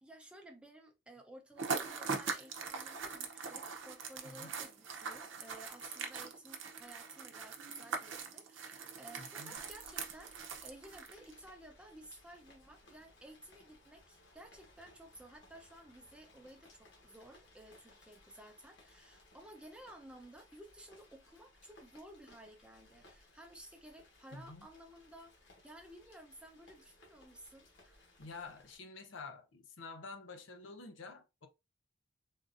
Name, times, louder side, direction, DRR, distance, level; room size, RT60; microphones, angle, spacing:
voice 1, 0.0-28.0, right 1 dB, 5° right, 0.6 m, -55 dB
sound 1, 1.6-11.3, right 5 dB, 80° right, 0.6 m, -42 dB
voice 2, 4.2-4.6 9.2-9.6 24.3-24.7 28.2-31.5, left 4 dB, 85° left, 0.7 m, -49 dB
Rain, 9.5-28.7, left 2 dB, 65° left, 1.2 m, -63 dB
3.6 x 2.5 x 2.5 m
head